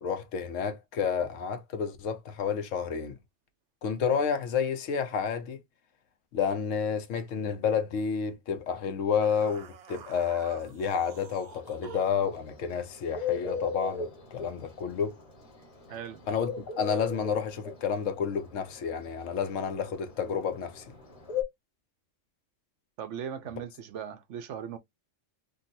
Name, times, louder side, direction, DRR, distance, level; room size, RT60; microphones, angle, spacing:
voice 1, 0.0-3.2 3.8-5.6 6.3-15.2 16.3-20.9, left 6 dB, 75° left, 1.0 m, -30 dB
sound 1, 9.2-12.3, right 7 dB, 90° right, 0.3 m, -48 dB
Bird, 11.5-21.4, left 6 dB, 30° left, 1.0 m, -35 dB
voice 2, 15.9-16.3 23.0-24.8, right 8 dB, 70° right, 0.9 m, -38 dB
3.6 x 2.4 x 2.6 m
omnidirectional pair, 1.3 m